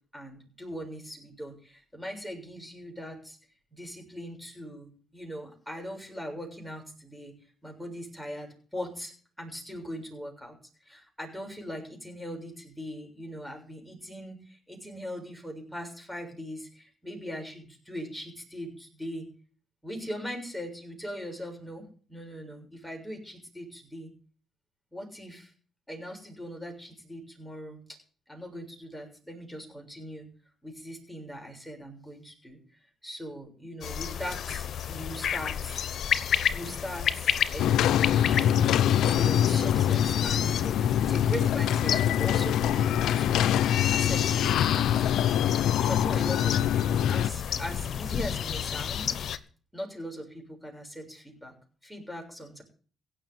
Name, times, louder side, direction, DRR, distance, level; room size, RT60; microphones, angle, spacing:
voice 1, 0.1-3.4 3.7-7.3 7.6-19.3 19.8-24.1 24.9-25.5 25.9-28.0 28.3-30.3 30.6-32.6 33.0-35.9 36.5-38.7 39.0-43.5 43.9-45.0 45.8-49.1 49.7-51.5 51.8-52.6, equal, ahead, 1 dB, 6.8 m, -40 dB
sound 1, 33.8-49.4, left 8 dB, 65° left, 1.0 m, -32 dB
sound 2, 37.6-47.3, left 10 dB, 80° left, 0.6 m, -24 dB
16.5 x 6.5 x 9.7 m, 0.42 s
cardioid pair, 90°, 0 cm